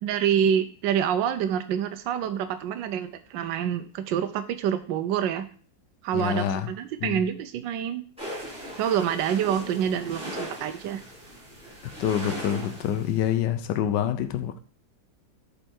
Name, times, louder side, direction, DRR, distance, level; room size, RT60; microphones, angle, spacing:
voice 1, 0.0-5.4 6.0-8.0 8.8-11.0, right 9 dB, 80° right, 1.3 m, -27 dB
voice 2, 6.1-6.7 7.0-7.2 12.0-14.6, left 9 dB, 75° left, 1.3 m, -26 dB
sound 1, 8.2-13.3, equal, 5° right, 4.0 m, -39 dB
7.8 x 5.5 x 4.4 m
omnidirectional pair, 2.0 m